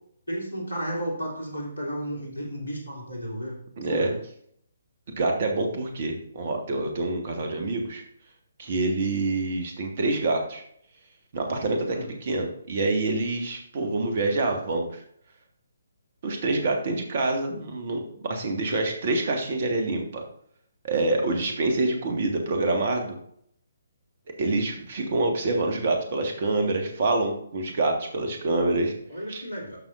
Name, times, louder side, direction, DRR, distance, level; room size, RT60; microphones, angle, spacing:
voice 1, 0.3-3.6 3.9-4.2 11.9-12.1 29.1-29.8, equal, 70° left, -2 dB, 3.2 m, -32 dB
voice 2, 3.8-4.1 5.1-8.0 8.6-10.6 11.3-15.0 16.2-20.2 20.8-23.2 24.4-28.9 29.3-29.4, right 2 dB, 40° right, 3 dB, 1.7 m, -26 dB
12.5 x 5.7 x 2.6 m, 0.66 s
figure-of-eight pair, 135°, 0 cm